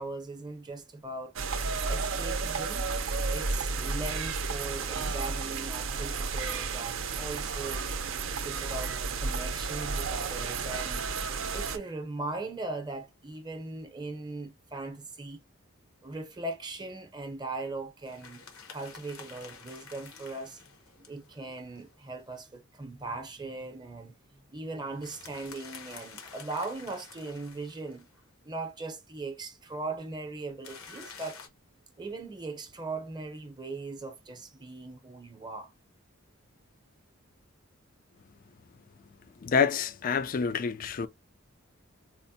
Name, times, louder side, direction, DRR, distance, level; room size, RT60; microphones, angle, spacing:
voice 1, 0.0-1.3 1.9-2.9 3.3-7.9 8.4-11.1 11.5-15.4 16.0-18.4 18.7-20.6 21.0-24.2 24.5-28.0 28.4-31.4 32.0-35.7, right 3 dB, 20° right, 0.7 m, -39 dB
sound 1, 1.4-11.8, right 4 dB, 65° right, 0.5 m, -32 dB
sound 2, 18.1-22.4 24.9-28.2 30.6-31.5, left 5 dB, 80° left, 0.9 m, -49 dB
voice 2, 39.4-41.1, left 6 dB, 40° left, 0.3 m, -27 dB
4.3 x 2.1 x 2.7 m
head